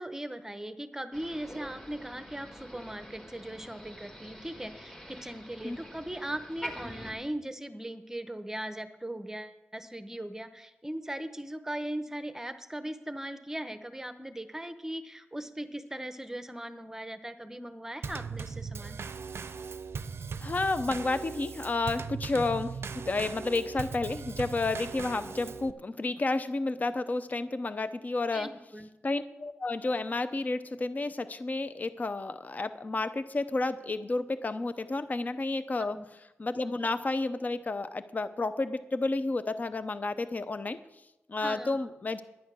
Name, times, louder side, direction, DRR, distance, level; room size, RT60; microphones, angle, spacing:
voice 1, 0.0-19.0 28.3-28.9 35.8-36.0 41.4-41.9, right 1 dB, 10° right, 9 dB, 0.8 m, -39 dB
Motor vehicle (road), 1.1-7.1, equal, 15° left, 1.8 m, -45 dB
Drum kit / Snare drum / Bass drum, 18.0-25.7, right 5 dB, 65° right, 0.5 m, -39 dB
voice 2, 20.4-28.5 29.0-36.0 36.4-40.8 41.3-42.2, left 3 dB, 35° left, 12 dB, 0.6 m, -31 dB
10.5 x 10.5 x 6.2 m, 0.95 s
wide cardioid pair, 115°, 5 cm